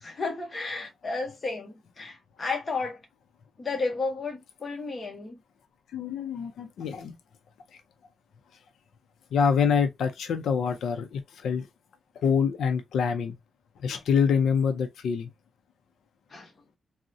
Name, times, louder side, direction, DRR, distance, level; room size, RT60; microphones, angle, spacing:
voice 1, 0.0-3.0 3.6-5.4 16.3-16.5, left 3 dB, 30° left, 0.8 m, -32 dB
voice 2, 5.9-7.2 9.3-11.7 12.2-13.4 13.8-15.3, left 6 dB, 85° left, 0.4 m, -26 dB
3.6 x 2.0 x 2.6 m
wide cardioid pair, 175°, 0 cm